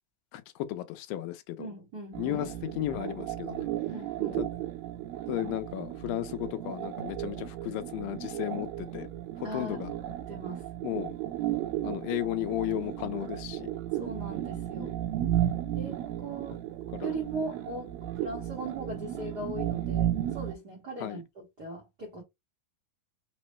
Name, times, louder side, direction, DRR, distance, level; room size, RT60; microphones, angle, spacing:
voice 1, 0.3-1.7 2.2-3.7 4.4-4.5 5.3-9.1 9.4-9.9 10.8-11.1 11.8-13.7 16.9-17.2 21.0-21.2, left 15 dB, 85° left, 2.3 m, -34 dB
voice 2, 1.6-2.5 3.9-4.5 9.4-9.8 10.1-10.7 13.9-15.0 15.7-16.6 17.0-22.2, right 2 dB, 65° right, 0.9 m, -39 dB
sound 1, 2.1-20.5, right 12 dB, 85° right, 2.7 m, -34 dB
6.0 x 2.0 x 3.1 m
omnidirectional pair, 4.1 m